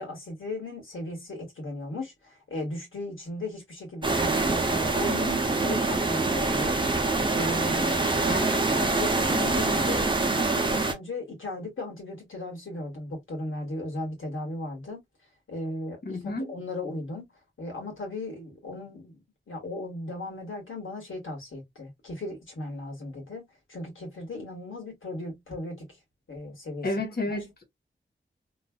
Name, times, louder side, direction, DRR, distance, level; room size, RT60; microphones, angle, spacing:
voice 1, 0.0-15.0 15.5-17.2 17.6-25.9 26.3-26.9, left 2 dB, 80° left, 1.8 m, -37 dB
sound 1, 4.0-10.9, right 3 dB, 25° right, 0.6 m, -25 dB
voice 2, 16.0-16.5 26.8-27.6, left 2 dB, 50° left, 1.1 m, -31 dB
3.2 x 2.5 x 2.3 m
wide cardioid pair, 110°, 20 cm